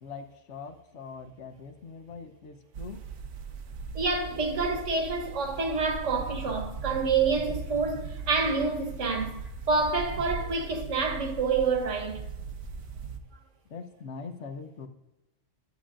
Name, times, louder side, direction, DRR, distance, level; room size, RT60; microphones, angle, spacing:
voice 1, 0.0-3.0 13.7-14.9, left 5 dB, 65° left, 1.2 m, -42 dB
sound 1, 2.7-13.2, right 5 dB, 85° right, 1.2 m, -39 dB
voice 2, 3.9-12.3, right 4 dB, 65° right, 1.5 m, -28 dB
12.5 x 8.4 x 2.5 m
omnidirectional pair, 1.4 m